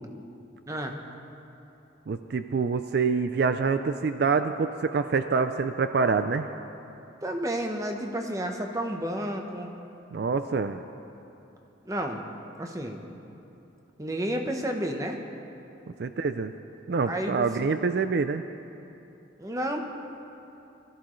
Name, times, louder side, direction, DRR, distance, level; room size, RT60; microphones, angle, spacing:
voice 1, 0.7-1.0 7.2-9.7 11.8-12.2 12.6-13.0 14.0-15.2 17.0-17.5 19.4-19.8, right 1 dB, 15° right, 3 dB, 0.9 m, -31 dB
voice 2, 2.1-6.5 10.1-10.8 16.0-16.5 16.9-18.4, right 5 dB, 55° right, 9 dB, 0.4 m, -26 dB
21.5 x 13.5 x 3.2 m, 2.9 s
head